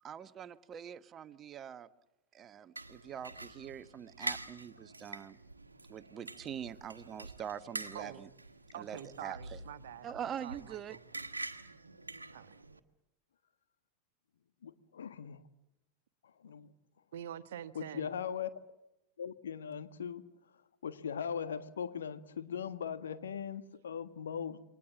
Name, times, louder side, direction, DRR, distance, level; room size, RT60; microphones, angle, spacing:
voice 1, 0.0-1.9 2.3-5.4 5.9-8.3 8.8-9.6 10.0-11.0, right 9 dB, 25° right, 1.1 m, -44 dB
sound 1, 2.8-12.8, right 2 dB, 80° right, 1.4 m, -46 dB
voice 2, 7.9-8.2 8.7-11.0 12.3-12.5 17.1-18.1, right 10 dB, 60° right, 1.4 m, -46 dB
voice 3, 14.6-15.4 16.4-16.7 17.7-18.5 19.2-20.2 20.8-24.6, left 7 dB, 65° left, 1.6 m, -39 dB
29.0 x 23.0 x 7.4 m
figure-of-eight pair, 90°, 0 cm